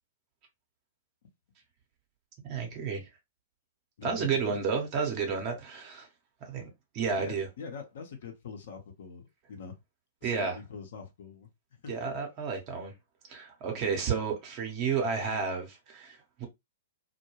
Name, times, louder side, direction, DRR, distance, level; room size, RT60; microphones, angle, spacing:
voice 1, 2.4-3.1 4.0-6.1 6.4-6.6 6.9-7.5 10.2-10.6 11.9-12.9 13.3-16.5, right 5 dB, 40° right, 0.8 m, -31 dB
voice 2, 4.0-4.5 7.3-9.8 10.2-11.9, left 6 dB, 60° left, 0.8 m, -44 dB
2.2 x 2.2 x 3.0 m
figure-of-eight pair, 110°, 0 cm